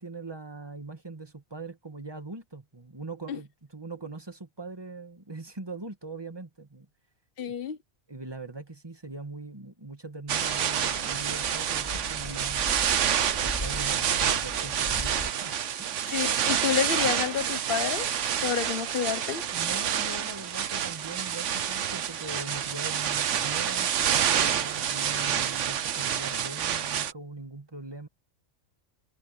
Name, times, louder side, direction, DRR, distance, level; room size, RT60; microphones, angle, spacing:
voice 1, 0.0-6.9 8.1-12.7 13.3-16.0 19.5-28.1, right 3 dB, 20° right, 2.0 m, -41 dB
voice 2, 7.4-7.8 16.1-19.5, left 8 dB, 45° left, 1.2 m, -29 dB
sound 1, 10.3-15.3, left 1 dB, 30° left, 3.8 m, -39 dB
sound 2, 10.3-27.1, right 9 dB, 65° right, 1.2 m, -28 dB
omnidirectional pair, 1.4 m